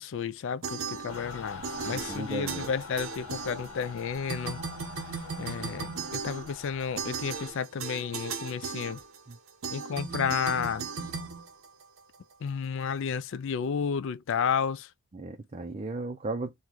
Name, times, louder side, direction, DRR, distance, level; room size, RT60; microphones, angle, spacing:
voice 1, 0.0-4.6 5.4-9.0 9.7-10.9 12.4-14.9, left 6 dB, 60° left, 0.4 m, -32 dB
sound 1, 0.6-1.4 1.6-4.0 4.3-12.2, right 5 dB, 75° right, 0.7 m, -37 dB
Mechanical fan, 1.1-7.5, left 3 dB, 80° left, 1.0 m, -44 dB
voice 2, 1.9-2.7 9.3-9.4 15.1-16.5, right 2 dB, 30° right, 0.5 m, -35 dB
3.1 x 2.2 x 3.8 m
head